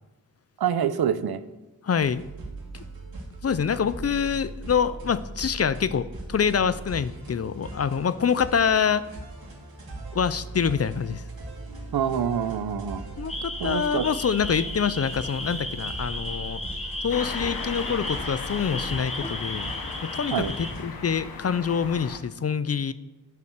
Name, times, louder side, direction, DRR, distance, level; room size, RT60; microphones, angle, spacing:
voice 1, 0.6-1.4 11.9-13.0 13.6-14.1 20.3-20.5, right 8 dB, 90° right, 12 dB, 0.7 m, -26 dB
voice 2, 1.8-2.2 2.7-2.8 3.4-9.1 10.1-11.2 13.2-16.6 17.0-19.7 20.0-22.9, left 7 dB, 40° left, 16 dB, 0.5 m, -26 dB
sound 1, 2.0-20.9, right 2 dB, 75° right, 2.5 m, -39 dB
sound 2, 13.3-20.7, left 1 dB, 15° left, 1.1 m, -35 dB
sound 3, 17.1-22.2, left 5 dB, 75° left, 1.0 m, -37 dB
8.4 x 6.9 x 6.6 m, 1.0 s
wide cardioid pair, 90°, 37 cm